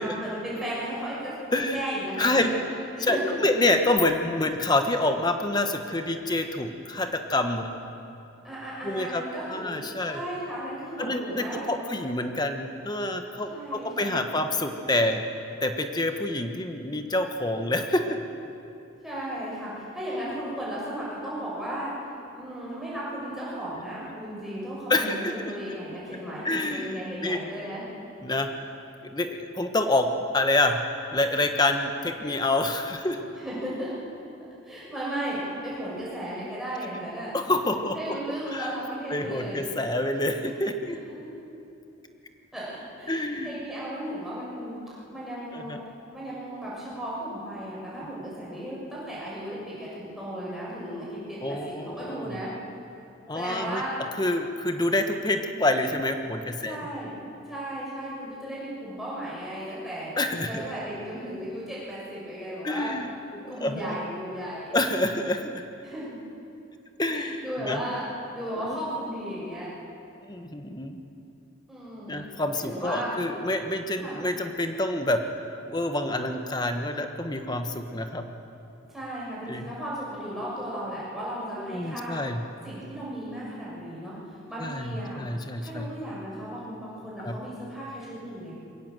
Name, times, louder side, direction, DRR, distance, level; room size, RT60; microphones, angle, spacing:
voice 1, 0.0-2.6 2.9-3.5 8.4-9.7 10.0-12.0 13.5-14.4 19.0-21.9 22.3-27.9 33.3-33.9 34.6-37.3 37.9-39.7 41.0-41.3 42.5-44.8 45.1-45.8 46.1-52.6 53.3-54.0 56.6-57.1 57.4-60.1 60.5-62.9 63.5-64.8 65.8-66.2 67.1-68.0 68.3-69.7 71.7-72.2 72.5-73.1 74.0-74.3 78.8-82.2 82.6-84.2 84.5-85.3 85.6-88.5, right 1 dB, ahead, -8 dB, 6.6 m, -35 dB
voice 2, 1.5-1.8 2.2-2.5 3.0-7.7 8.8-9.2 9.5-10.2 11.0-15.2 15.6-18.2 24.9-25.5 26.4-27.4 28.2-28.5 29.0-30.1 30.3-30.8 31.1-33.2 37.3-38.2 38.5-38.8 39.1-41.0 43.1-43.7 45.5-45.8 48.0-48.1 51.4-52.4 53.3-53.8 54.2-56.8 60.2-60.6 62.6-63.8 64.7-65.6 67.0-67.8 68.6-68.8 70.2-71.0 72.1-75.2 75.6-78.3 79.5-79.7 81.6-82.4 84.6-85.9 87.2-87.3, left 2 dB, 20° left, 6 dB, 1.2 m, -27 dB
22.0 x 17.0 x 7.6 m, 2.8 s
head